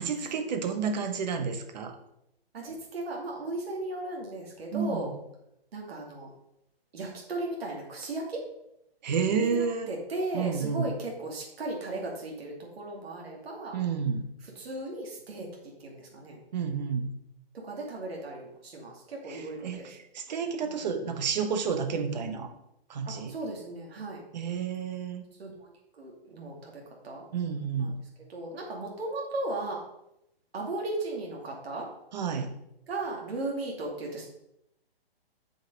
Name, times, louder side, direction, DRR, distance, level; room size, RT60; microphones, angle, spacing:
voice 1, 0.0-1.9 4.7-5.2 9.0-9.9 10.3-10.9 13.7-14.2 16.5-17.1 19.3-22.5 22.9-23.3 24.3-25.2 27.3-28.0 32.1-32.5, right 6 dB, 45° right, 7 dB, 1.1 m, -30 dB
voice 2, 2.5-5.1 5.7-6.3 6.9-8.4 9.4-13.8 14.4-15.5 15.8-16.4 17.6-19.9 20.6-20.7 23.1-24.2 25.4-27.2 27.8-27.9 28.3-29.8 30.5-31.9 32.9-34.3, right 2 dB, 75° right, -1 dB, 2.5 m, -36 dB
7.3 x 5.6 x 5.2 m, 0.82 s
hypercardioid pair, 165°, 31 cm